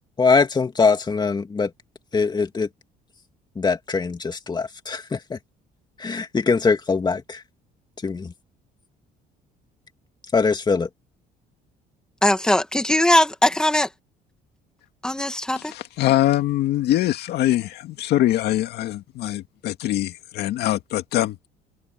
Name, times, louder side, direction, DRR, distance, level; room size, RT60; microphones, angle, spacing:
voice 1, 0.2-1.7 2.1-2.7 3.6-5.4 6.0-7.4 8.0-8.3 10.3-10.9, left 4 dB, 25° left, 2.7 m, -22 dB
voice 2, 12.2-13.9 15.0-15.7, left 1 dB, 5° left, 2.2 m, -20 dB
voice 3, 15.6-21.5, left 14 dB, 80° left, 2.2 m, -23 dB
open air
cardioid pair, 110°, 17 cm